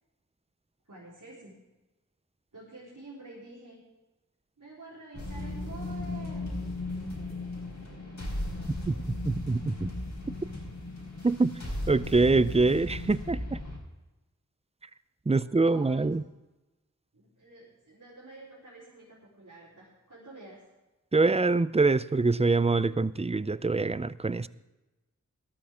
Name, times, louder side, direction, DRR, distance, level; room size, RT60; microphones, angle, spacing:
voice 1, 0.8-1.5 2.5-3.8 4.6-6.5 15.3-16.1 17.1-20.6, right 2 dB, 75° right, -8 dB, 4.2 m, -49 dB
sound 1, 5.1-13.8, left 2 dB, 65° left, 4.6 m, -36 dB
voice 2, 8.9-9.9 11.2-11.5 11.9-13.4 15.3-16.2 21.1-24.5, right 3 dB, 20° right, 16 dB, 0.5 m, -25 dB
18.5 x 13.0 x 3.7 m, 1.1 s
wide cardioid pair, 50°, 31 cm